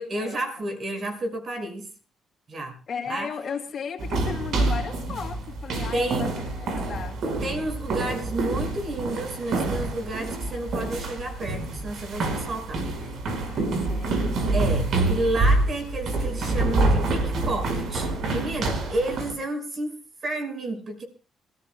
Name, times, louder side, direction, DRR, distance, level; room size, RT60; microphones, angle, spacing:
voice 1, 0.0-1.9 2.5-2.8 3.1-3.3 5.9-6.4 7.4-12.8 14.5-21.0, right 2 dB, 45° right, 5.9 m, -31 dB
voice 2, 2.9-7.2 13.5-14.4, left 6 dB, 50° left, 2.7 m, -35 dB
sound 1, 4.0-19.3, right 2 dB, 70° right, 5.1 m, -27 dB
28.0 x 14.0 x 2.3 m
cardioid pair, 90°, 0 cm